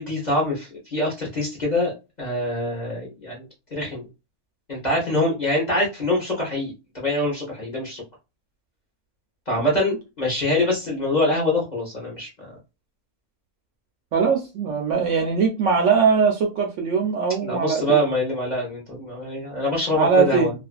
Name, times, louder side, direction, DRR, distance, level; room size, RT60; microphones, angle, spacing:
voice 1, 0.0-3.4 3.7-4.1 4.7-8.0 9.5-12.6 17.4-20.5, left 1 dB, 40° left, -4 dB, 0.7 m, -24 dB
voice 2, 14.1-18.1 19.9-20.5, right 5 dB, 65° right, 2 dB, 0.8 m, -21 dB
2.5 x 2.4 x 2.2 m, 0.28 s
omnidirectional pair, 1.6 m